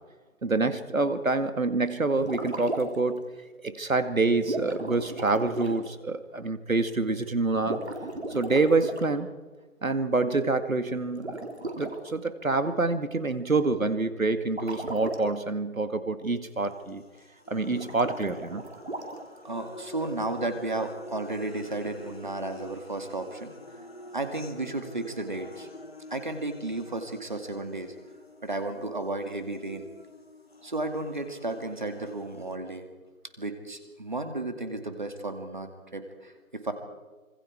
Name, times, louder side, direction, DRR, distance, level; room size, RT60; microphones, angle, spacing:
voice 1, 0.4-3.2 3.6-7.8 8.3-9.3 9.8-11.4 11.8-17.0 17.5-18.6, right 3 dB, 70° right, 10 dB, 2.2 m, -27 dB
sound 1, 2.1-3.1 4.4-5.9 7.6-9.1 11.1-11.9 14.5-15.2 17.6-19.4, right 2 dB, 50° right, 3.9 m, -36 dB
sound 2, 16.6-32.6, left 1 dB, 45° left, 1.9 m, -47 dB
voice 2, 19.4-23.8 24.1-25.7 26.1-27.9 28.4-29.8 30.6-32.9 33.4-36.7, right 2 dB, 35° right, 7 dB, 2.3 m, -33 dB
26.5 x 26.0 x 4.7 m, 1.3 s
figure-of-eight pair, 175°, 42 cm